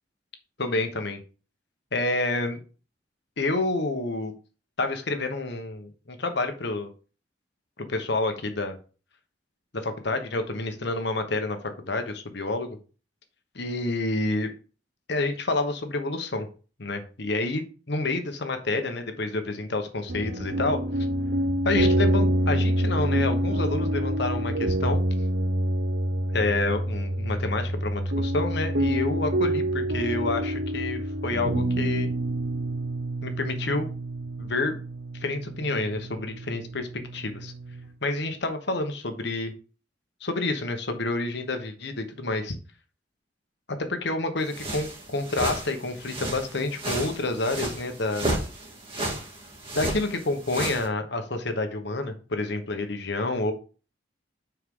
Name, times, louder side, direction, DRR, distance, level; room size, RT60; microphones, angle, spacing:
voice 1, 0.6-1.2 1.9-2.6 3.4-4.3 4.8-6.9 7.8-8.8 9.7-12.8 13.5-14.5 15.1-16.5 16.8-20.8 21.6-25.0 26.3-32.1 33.2-33.9 34.4-34.8 35.2-37.5 38.0-39.5 40.2-42.6 43.7-48.3 49.7-53.5, left 2 dB, 65° left, 7 dB, 1.3 m, -29 dB
sound 1, 20.1-37.9, right 1 dB, 65° right, 0.8 m, -27 dB
sound 2, 44.5-50.9, right 1 dB, 30° right, 2.1 m, -33 dB
9.5 x 4.6 x 3.8 m, 0.36 s
head